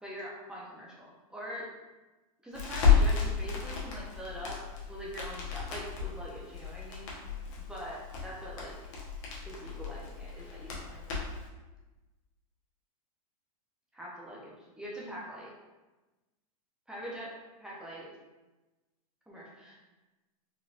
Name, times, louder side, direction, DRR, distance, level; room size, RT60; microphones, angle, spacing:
voice 1, 0.0-1.7 2.4-4.6 4.9-7.2 7.7-8.8 9.4-11.3 13.9-15.5 16.9-17.3 17.6-18.1 19.3-19.7, equal, 5° right, -6 dB, 0.5 m, -43 dB
Crackle, 2.5-11.5, left 6 dB, 55° left, 1.0 m, -32 dB
4.0 x 2.8 x 2.4 m, 1.1 s
supercardioid pair, 150°, 19 cm